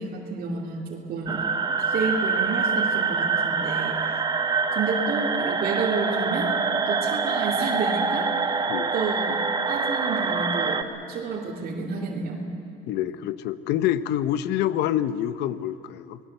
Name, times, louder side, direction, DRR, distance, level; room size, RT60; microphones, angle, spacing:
voice 1, 0.0-1.5 1.8-4.1 4.7-6.5 6.8-8.5 8.9-12.5, right 4 dB, 60° right, -3 dB, 2.6 m, -30 dB
sound 1, 1.3-10.8, right 5 dB, 25° right, 1.2 m, -25 dB
voice 2, 12.9-16.2, left 11 dB, 85° left, 13 dB, 0.8 m, -26 dB
26.5 x 19.5 x 8.0 m, 2.6 s
cardioid pair, 110°, 17 cm